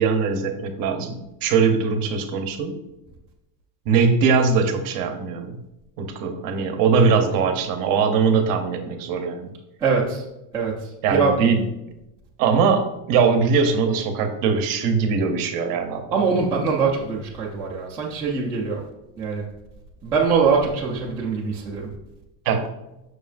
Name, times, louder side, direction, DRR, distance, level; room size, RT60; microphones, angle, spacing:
voice 1, 0.0-2.8 3.9-5.6 6.0-9.5 11.0-11.6 12.4-16.2 22.5-22.7, right 5 dB, 45° right, 6 dB, 0.8 m, -21 dB
voice 2, 9.8-10.2 10.5-10.7 11.1-11.3 16.1-18.8 19.2-19.4 20.0-21.9, right 5 dB, 10° right, -6 dB, 0.4 m, -22 dB
7.2 x 6.3 x 2.5 m, 0.92 s
cardioid pair, 180°, 49 cm